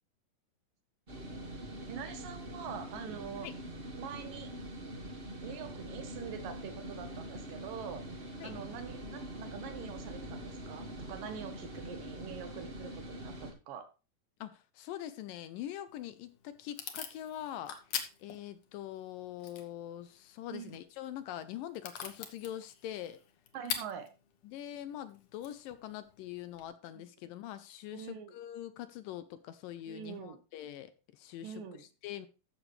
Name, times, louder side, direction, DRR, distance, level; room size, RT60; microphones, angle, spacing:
sound 1, 1.1-13.5, right 1 dB, 35° right, 0.9 m, -44 dB
voice 1, 1.9-3.5 4.0-4.5 5.4-13.9 20.5-20.8 23.5-24.1 26.9-27.0 27.9-28.3 29.9-30.4 31.4-31.8, right 8 dB, 70° right, 2.9 m, -44 dB
voice 2, 14.4-17.8 18.2-23.2 24.4-32.3, left 12 dB, 75° left, 2.2 m, -43 dB
Packing tape duct tape / Tearing, 15.9-26.7, left 8 dB, 60° left, 2.0 m, -45 dB
14.0 x 6.6 x 3.3 m
omnidirectional pair, 4.3 m